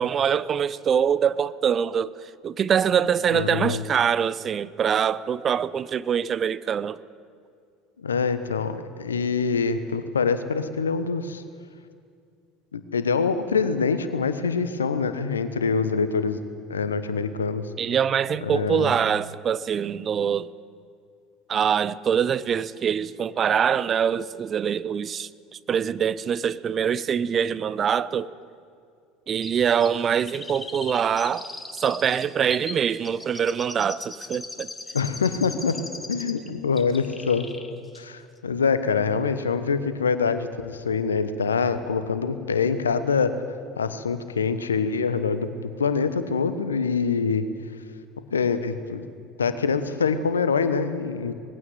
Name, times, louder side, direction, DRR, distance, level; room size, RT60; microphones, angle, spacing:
voice 1, 0.0-2.1 2.4-7.0 17.8-20.5 21.5-25.3 25.7-28.3 29.3-31.5 31.8-34.7, right 8 dB, 35° right, 0.7 m, -24 dB
voice 2, 3.3-3.8 8.0-11.4 12.7-16.4 16.7-17.7 18.4-18.9 34.9-35.8 36.1-37.4 38.0-43.3 43.8-47.5 48.3-49.0 49.4-51.3, left 5 dB, 80° left, 1.1 m, -25 dB
Chirp tweet, 29.4-36.5 36.8-37.7 37.9-38.0, left 2 dB, 15° left, 2.0 m, -39 dB
20.0 x 16.0 x 9.5 m
figure-of-eight pair, 70°, 0 cm